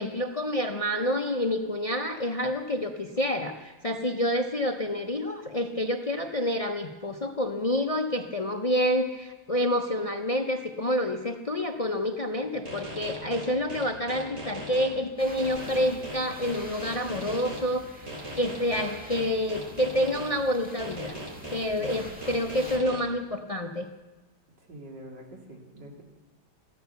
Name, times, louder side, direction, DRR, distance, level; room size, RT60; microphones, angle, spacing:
voice 1, 0.0-21.2 21.5-23.9, left 1 dB, 65° left, 5 dB, 0.3 m, -28 dB
sound 1, 12.7-14.9 15.4-17.6 18.1-20.3 20.8-23.0, right 1 dB, 45° right, 4.0 m, -38 dB
sound 2, 15.2-22.8, equal, 5° right, 1.9 m, -47 dB
voice 2, 24.7-26.0, right 1 dB, 85° right, 0 dB, 3.3 m, -44 dB
14.5 x 13.5 x 6.8 m, 1.2 s
omnidirectional pair, 1.9 m